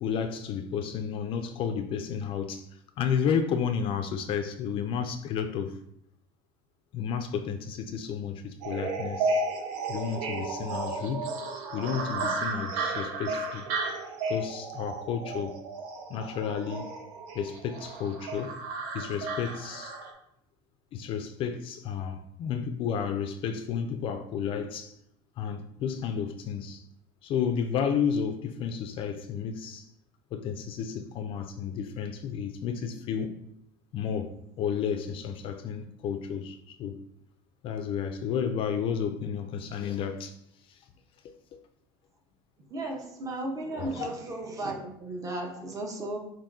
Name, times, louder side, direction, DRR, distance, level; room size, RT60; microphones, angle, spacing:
voice 1, 0.0-5.8 6.9-9.4 9.9-11.3 11.7-13.7 14.3-15.6 16.1-16.9 17.3-18.6 18.9-20.0 20.9-24.9 25.4-26.8 27.2-29.9 30.3-33.3 33.9-37.0 37.6-40.4 40.7-40.8 41.2-41.6 43.8-44.1, left 7 dB, 45° left, 0.4 m, -32 dB
sound 1, 8.6-20.1, right 3 dB, 75° right, 0.9 m, -33 dB
voice 2, 42.7-46.2, right 1 dB, 25° right, 1.0 m, -35 dB
7.0 x 2.6 x 2.7 m
supercardioid pair, 120°, 12 cm